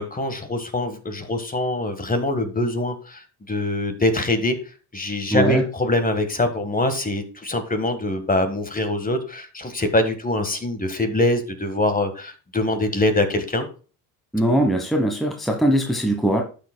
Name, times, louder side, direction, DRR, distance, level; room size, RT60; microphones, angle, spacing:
voice 1, 0.0-4.6 4.9-13.7, left 1 dB, 20° left, 8 dB, 1.5 m, -23 dB
voice 2, 5.3-5.6 14.3-16.4, right 1 dB, ahead, 3 dB, 1.2 m, -21 dB
11.5 x 6.4 x 2.2 m, 0.36 s
hypercardioid pair, 70°, 47 cm